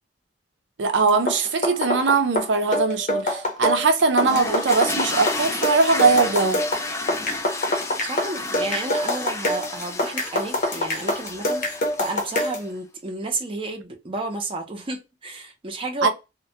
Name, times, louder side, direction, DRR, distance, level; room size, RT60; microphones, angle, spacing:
voice 1, 0.8-6.6 16.0-16.1, right 4 dB, 75° right, 0.5 m, -20 dB
sound 1, 1.1-12.7, left 1 dB, 45° left, 0.7 m, -25 dB
sound 2, 4.2-12.7, left 2 dB, 15° left, 0.3 m, -32 dB
voice 2, 8.1-11.6 12.0-16.1, right 2 dB, 30° right, 0.5 m, -31 dB
2.2 x 2.1 x 2.7 m
head